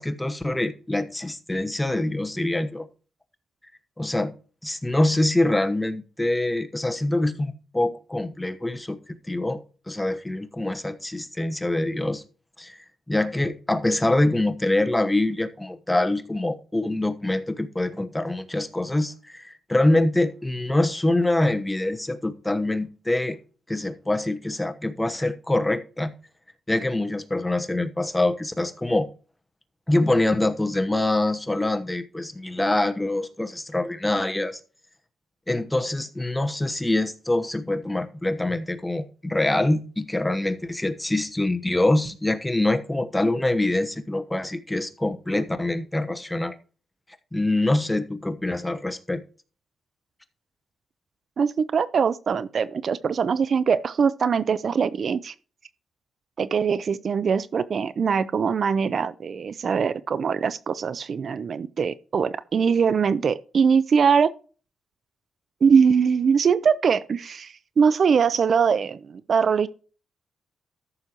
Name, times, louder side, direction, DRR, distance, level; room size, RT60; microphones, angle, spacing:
voice 1, 0.0-2.9 4.0-4.3 4.6-9.0 9.3-12.2 12.6-12.8 13.1-23.4 23.7-26.1 26.7-29.1 29.9-34.6 35.5-46.5 47.3-49.2, left 2 dB, 10° left, 1.0 m, -25 dB
voice 2, 51.4-55.3 56.4-64.3 65.6-69.7, right 6 dB, 55° right, 0.4 m, -22 dB
14.0 x 6.4 x 2.9 m
cardioid pair, 75°, 0 cm